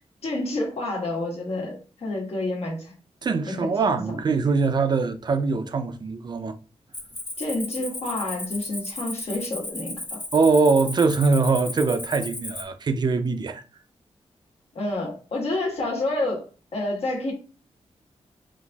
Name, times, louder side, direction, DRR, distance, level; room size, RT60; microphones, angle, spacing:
voice 1, 0.2-2.9 3.4-4.2 7.4-10.2 14.7-16.4 16.7-17.3, left 2 dB, 60° left, 1.2 m, -29 dB
voice 2, 3.2-6.6 10.3-13.6, right 4 dB, 40° right, 0.4 m, -22 dB
Cricket, 6.9-12.6, left 2 dB, 15° left, 0.6 m, -35 dB
3.9 x 2.6 x 2.3 m
wide cardioid pair, 165°, 11 cm